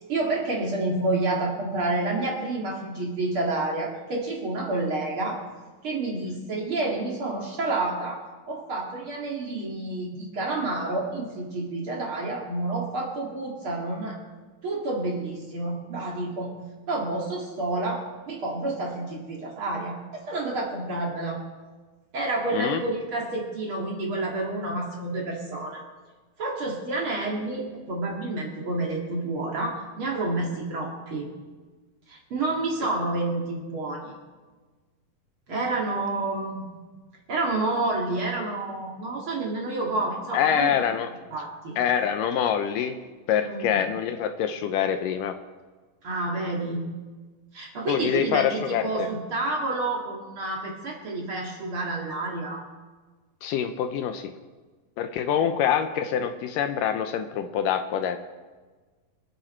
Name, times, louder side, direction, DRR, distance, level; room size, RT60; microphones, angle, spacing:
voice 1, 0.1-5.4 5.8-8.2 8.5-14.2 14.6-16.5 16.9-21.4 22.1-25.8 26.4-31.3 32.1-34.1 35.5-36.7 37.3-40.8 41.3-41.7 43.4-43.8 46.0-46.9 47.5-52.6, right 2 dB, 40° right, -2 dB, 2.6 m, -29 dB
voice 2, 40.3-41.1 41.8-43.0 43.3-45.3 47.9-49.1 53.4-54.3 55.0-58.2, left 8 dB, 75° left, 8 dB, 2.2 m, -25 dB
24.5 x 9.2 x 4.4 m, 1.3 s
omnidirectional pair, 4.1 m